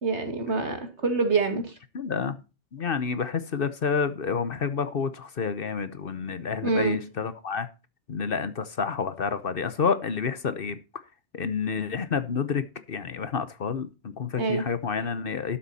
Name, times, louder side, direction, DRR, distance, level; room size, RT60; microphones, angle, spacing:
voice 1, 0.0-1.8 6.6-7.0 14.4-14.6, right 4 dB, 65° right, 2.4 m, -26 dB
voice 2, 1.9-2.4 2.7-7.7 8.1-10.8 11.3-15.6, left 5 dB, 55° left, 1.0 m, -29 dB
12.5 x 7.4 x 4.2 m
omnidirectional pair, 1.2 m